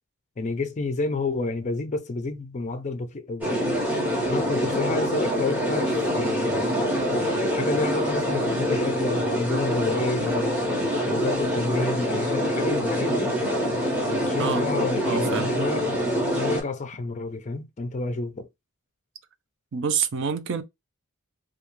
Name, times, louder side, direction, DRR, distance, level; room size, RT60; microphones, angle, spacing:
voice 1, 0.4-3.5 4.2-6.7 7.5-10.6 11.1-13.3 14.0-15.9 16.3-18.5, left 3 dB, 35° left, 0.4 m, -30 dB
sound 1, 3.4-16.6, equal, 5° right, 1.0 m, -25 dB
voice 2, 15.0-15.5 19.7-20.6, right 6 dB, 55° right, 0.5 m, -27 dB
2.3 x 2.3 x 3.0 m
head